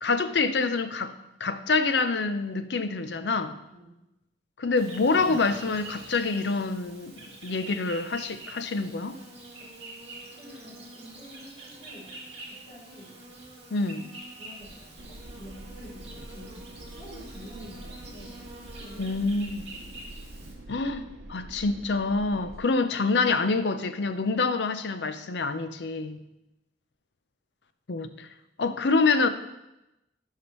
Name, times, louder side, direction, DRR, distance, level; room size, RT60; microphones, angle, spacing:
voice 1, 0.0-1.1 1.4-3.5 4.6-9.2 13.7-14.1 19.0-19.6 20.7-26.2 27.9-28.3 28.6-29.3, left 3 dB, 75° left, 10 dB, 0.6 m, -26 dB
Insect, 4.8-20.5, right 2 dB, 35° right, 1.8 m, -45 dB
voice 2, 10.3-12.1 12.5-13.1 14.4-18.4 18.8-19.2 19.7-19.9 22.6-22.7, equal, 30° left, -11 dB, 3.3 m, -48 dB
sound 1, 15.0-22.6, right 1 dB, 90° right, 0.8 m, -45 dB
12.5 x 5.8 x 3.1 m, 0.92 s
head